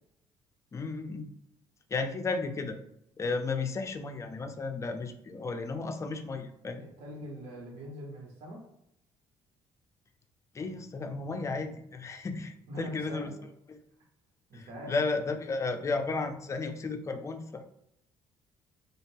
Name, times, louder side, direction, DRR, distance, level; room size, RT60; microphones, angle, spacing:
voice 1, 0.7-1.3 1.9-2.8 3.2-6.9 10.5-13.3 13.7-13.8 14.5-17.6, left 3 dB, 30° left, 6 dB, 0.4 m, -34 dB
voice 2, 6.8-8.6 12.7-13.4 14.5-15.0, equal, 75° right, -3 dB, 1.2 m, -42 dB
2.7 x 2.4 x 3.3 m, 0.77 s
cardioid pair, 100°, 10 cm